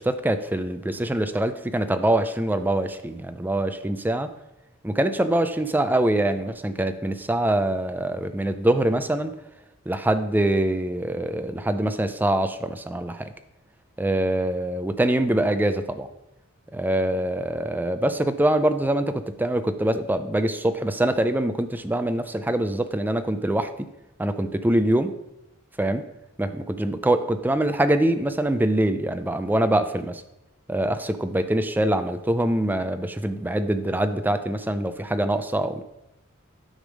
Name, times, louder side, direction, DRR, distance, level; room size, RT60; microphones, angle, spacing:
voice 1, 0.0-4.3 4.8-9.3 9.9-13.3 14.0-16.1 16.7-23.9 24.2-25.1 25.8-26.0 26.4-30.2 30.7-35.8, right 1 dB, 10° right, 10 dB, 0.4 m, -24 dB
9.9 x 3.5 x 6.2 m, 0.93 s
head